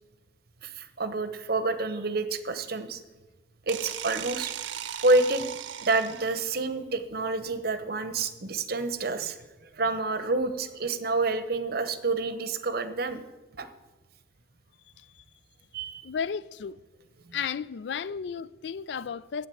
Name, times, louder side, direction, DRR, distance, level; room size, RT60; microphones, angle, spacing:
voice 1, 0.6-3.0 3.7-4.5 5.0-5.5 5.8-13.2 13.6-13.7 15.7-16.1, right 3 dB, 55° right, 0.9 m, -28 dB
sound 1, 3.7-6.6, right 10 dB, 85° right, 0.6 m, -37 dB
voice 2, 16.0-16.8 17.3-19.5, left 6 dB, 65° left, 0.4 m, -34 dB
9.4 x 7.5 x 8.3 m
head